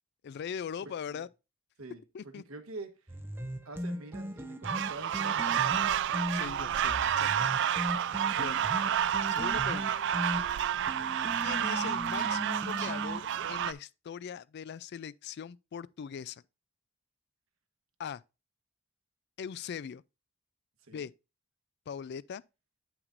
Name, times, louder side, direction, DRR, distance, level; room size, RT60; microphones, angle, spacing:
voice 1, 0.2-1.3 2.1-2.4 6.3-7.3 8.3-8.6 9.3-9.9 11.4-16.4 18.0-18.2 19.4-20.0 20.9-21.1 21.9-22.4, left 7 dB, 50° left, 0.3 m, -40 dB
voice 2, 2.5-3.1 3.6-5.9 20.8-21.1, right 2 dB, 80° right, 1.2 m, -46 dB
sound 1, 3.1-13.2, equal, 10° right, 0.6 m, -39 dB
sound 2, 4.6-13.7, right 9 dB, 55° right, 0.4 m, -30 dB
9.5 x 5.9 x 2.5 m
head